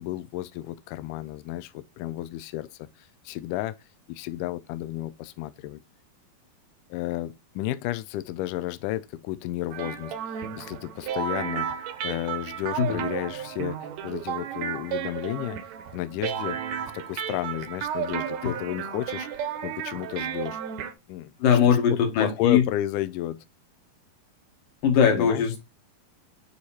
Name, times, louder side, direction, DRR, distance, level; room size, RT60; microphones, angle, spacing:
voice 1, 0.0-3.7 4.1-5.8 6.9-11.8 12.0-15.6 15.9-16.6 16.9-20.6 21.1-23.4 25.1-25.5, left 15 dB, 85° left, 1.8 m, -32 dB
sound 1, 9.7-20.9, right 8 dB, 70° right, 1.7 m, -33 dB
voice 2, 21.4-22.6 24.8-25.6, left 7 dB, 65° left, 3.1 m, -20 dB
9.4 x 3.2 x 4.3 m
omnidirectional pair, 4.3 m